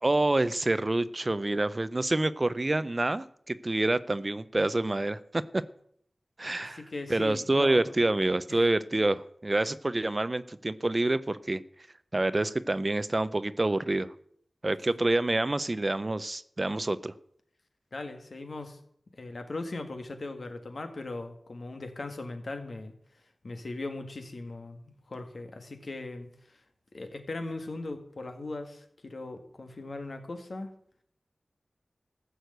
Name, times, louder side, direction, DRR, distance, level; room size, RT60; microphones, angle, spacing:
voice 1, 0.0-5.6 6.4-6.8 7.1-11.6 12.1-14.1 14.6-17.1, right 2 dB, 35° right, 15 dB, 0.6 m, -27 dB
voice 2, 6.6-7.8 8.5-8.6 17.9-18.8 19.2-22.9 23.4-26.3 26.9-30.7, left 2 dB, 65° left, 6 dB, 1.9 m, -39 dB
14.5 x 6.4 x 8.0 m, 0.66 s
wide cardioid pair, 85°, 0 cm